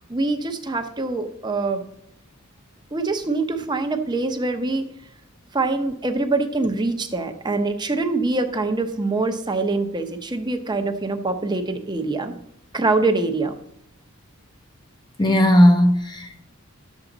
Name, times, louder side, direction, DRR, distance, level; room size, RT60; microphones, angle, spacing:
voice 1, 0.1-1.8 2.9-4.9 5.5-12.4 12.7-13.5, right 3 dB, 20° right, 0.8 m, -24 dB
voice 2, 15.2-16.4, equal, 20° left, 0.8 m, -16 dB
11.5 x 7.3 x 3.9 m
head